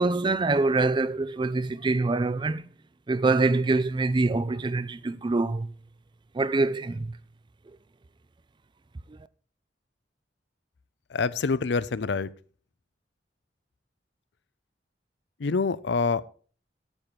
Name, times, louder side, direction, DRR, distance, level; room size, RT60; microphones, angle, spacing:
voice 1, 0.0-2.6 3.1-5.7 6.3-7.2, right 3 dB, 25° right, 0.4 m, -25 dB
voice 2, 11.1-12.3 15.4-16.3, left 4 dB, 70° left, 0.5 m, -26 dB
9.8 x 8.8 x 4.6 m
head